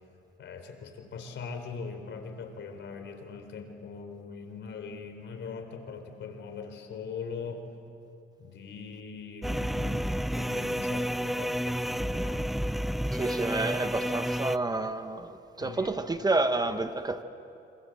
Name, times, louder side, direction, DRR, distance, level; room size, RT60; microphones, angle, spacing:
voice 1, 0.4-7.7 8.4-12.5 15.6-16.0, left 5 dB, 70° left, 4.0 m, -41 dB
sound 1, 9.4-14.6, equal, ahead, 0.5 m, -30 dB
voice 2, 13.1-17.2, right 2 dB, 20° right, 1.2 m, -29 dB
27.0 x 27.0 x 7.7 m
cardioid pair, 90°, 20 cm